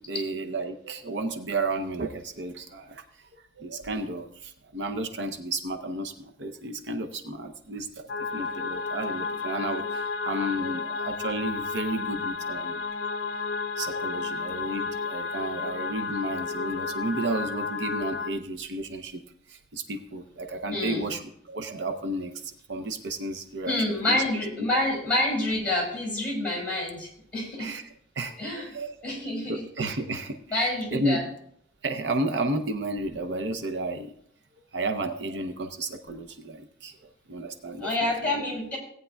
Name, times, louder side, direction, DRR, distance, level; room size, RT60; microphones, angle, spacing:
voice 1, 0.0-3.3 3.6-7.9 8.2-12.8 13.8-19.2 19.5-23.8 24.0-24.2 24.6-24.7 27.6-29.1 29.5-31.2 31.8-34.1 34.7-37.0 37.3-38.5, right 2 dB, 70° right, 6 dB, 0.7 m, -32 dB
sound 1, 8.1-18.3, left 4 dB, 70° left, 0.5 m, -32 dB
voice 2, 20.7-21.1 23.7-27.7 28.4-28.7 29.0-29.6 30.5-31.2 37.8-38.8, left 1 dB, 10° left, -5 dB, 5.2 m, -28 dB
17.5 x 9.2 x 2.3 m, 0.68 s
head